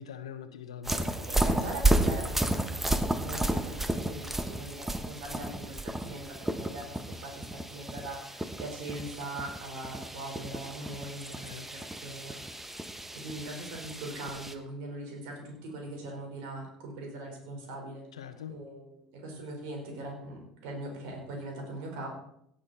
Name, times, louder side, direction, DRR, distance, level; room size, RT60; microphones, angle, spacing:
voice 1, 0.0-1.3 11.4-11.7 18.1-18.6, left 8 dB, 80° left, 11 dB, 1.0 m, -43 dB
sound 1, 0.8-14.5, right 2 dB, 10° right, 1.3 m, -32 dB
voice 2, 1.2-12.8 13.1-18.0 18.5-22.1, right 2 dB, 65° right, 1 dB, 4.8 m, -41 dB
17.5 x 9.1 x 4.3 m, 0.74 s
figure-of-eight pair, 65°, 3 cm